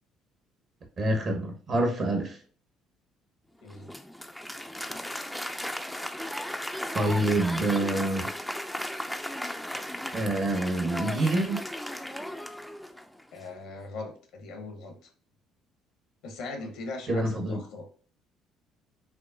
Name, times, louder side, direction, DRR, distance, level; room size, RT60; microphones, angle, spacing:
voice 1, 1.0-2.4 6.9-8.3 10.1-11.6 17.1-17.6, right 1 dB, 50° right, 1.2 m, -26 dB
Applause, 3.7-13.2, left 1 dB, 5° left, 0.4 m, -36 dB
voice 2, 13.3-15.0 16.2-17.9, left 3 dB, 75° left, 0.9 m, -40 dB
5.9 x 2.1 x 2.6 m
hypercardioid pair, 60°, 0 cm